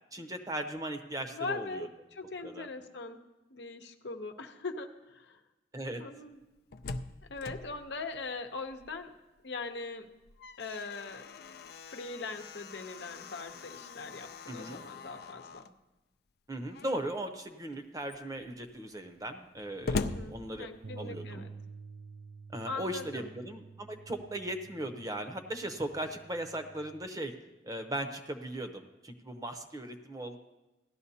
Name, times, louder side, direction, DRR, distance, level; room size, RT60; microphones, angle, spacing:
voice 1, 0.1-1.9 2.4-2.7 5.7-6.0 14.5-14.8 16.5-20.7 21.0-21.5 22.5-27.3 27.6-30.4, right 1 dB, 20° right, 7 dB, 0.7 m, -38 dB
voice 2, 1.3-3.2 3.5-5.4 6.0-6.4 7.3-9.1 9.4-10.1 10.6-11.2 11.9-15.7 20.0-21.5 22.7-23.3, left 3 dB, 80° left, 6 dB, 0.9 m, -41 dB
Slam, 6.4-9.2 9.6-9.7 10.1-15.8 16.6-17.2 17.7-17.8 18.0-21.2, left 3 dB, 60° left, 0.4 m, -42 dB
Bass guitar, 20.8-27.1, right 4 dB, 50° right, 0.4 m, -50 dB
16.5 x 12.0 x 2.8 m, 1.0 s
head